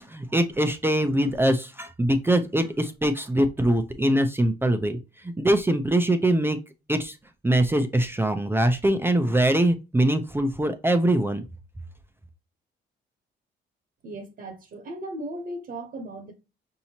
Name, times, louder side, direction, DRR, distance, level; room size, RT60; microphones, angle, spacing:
voice 1, 0.0-5.0 5.2-6.6 6.9-7.2 7.4-11.4, right 1 dB, 10° right, 0.5 m, -23 dB
voice 2, 14.0-16.3, right 1 dB, 50° right, 1.1 m, -36 dB
5.5 x 2.8 x 2.8 m
cardioid pair, 90°, 20 cm